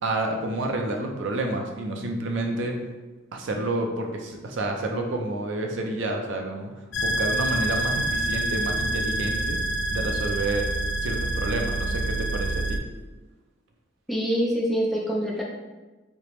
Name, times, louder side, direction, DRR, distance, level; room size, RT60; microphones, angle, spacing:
voice 1, 0.0-2.8 3.3-9.6 9.9-12.8, right 2 dB, 60° right, 2 dB, 0.5 m, -29 dB
sound 1, 6.9-12.8, right 2 dB, 65° left, 0.4 m, -27 dB
voice 2, 14.1-15.4, equal, ahead, -4 dB, 0.5 m, -25 dB
3.3 x 2.9 x 3.0 m, 1.2 s
head